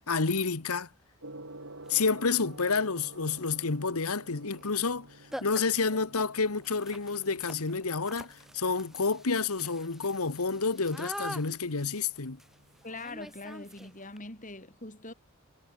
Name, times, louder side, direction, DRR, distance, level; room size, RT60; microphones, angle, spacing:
voice 1, 0.1-0.9 1.9-5.1 5.4-12.4, left 4 dB, 80° left, 1.4 m, -29 dB
Gong, 1.2-13.2, right 2 dB, 60° right, 6.4 m, -52 dB
sound 1, 1.8-1.9 2.5-2.9 4.6-4.7 5.0-5.1 5.3-14.2, equal, ahead, 3.7 m, -46 dB
voice 2, 12.8-15.1, left 2 dB, 35° left, 5.8 m, -42 dB
head